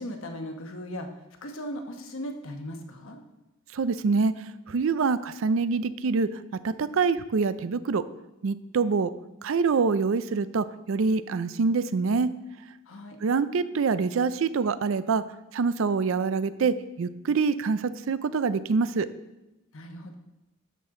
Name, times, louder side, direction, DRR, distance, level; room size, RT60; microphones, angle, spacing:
voice 1, 0.0-3.2 12.9-13.2 19.7-20.1, equal, 65° left, 4 dB, 1.1 m, -38 dB
voice 2, 3.7-8.0 8.4-9.1 9.4-12.3 13.2-15.2 15.5-19.1, right 4 dB, 65° right, 14 dB, 0.4 m, -25 dB
12.0 x 6.2 x 3.7 m, 0.97 s
head